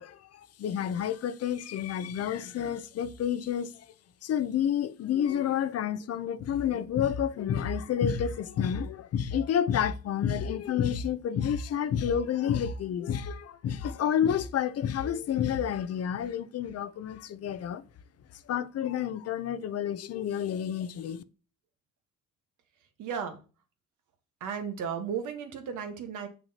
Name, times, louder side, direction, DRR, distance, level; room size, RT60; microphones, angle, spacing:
voice 1, 0.0-3.9 4.2-17.8 18.5-21.2, left 9 dB, 55° left, 0.6 m, -29 dB
voice 2, 23.0-23.4 24.4-26.3, right 7 dB, 80° right, 1.3 m, -34 dB
7.0 x 6.0 x 2.8 m
cardioid pair, 90°, 30 cm